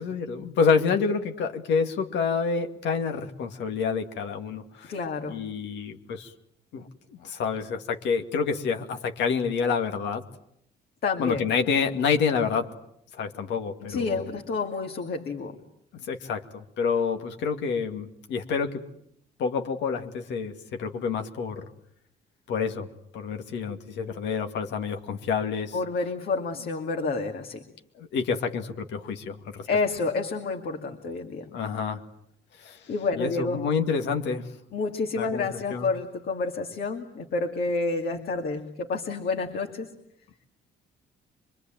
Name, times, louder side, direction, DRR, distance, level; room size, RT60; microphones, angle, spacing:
voice 1, 0.0-5.0 5.3-6.3 6.7-10.2 11.2-12.7 13.1-14.3 15.9-18.8 19.4-21.7 22.5-22.9 23.1-25.8 27.9-29.7 31.5-32.0 32.6-34.5 35.2-35.9, left 5 dB, 90° left, 6 dB, 2.4 m, -28 dB
voice 2, 4.9-5.4 11.0-11.5 13.9-15.5 25.7-27.6 29.7-31.5 32.9-33.6 34.7-39.9, left 4 dB, 60° left, 3 dB, 2.4 m, -29 dB
25.0 x 25.0 x 9.1 m, 0.73 s
cardioid pair, 140°, 18 cm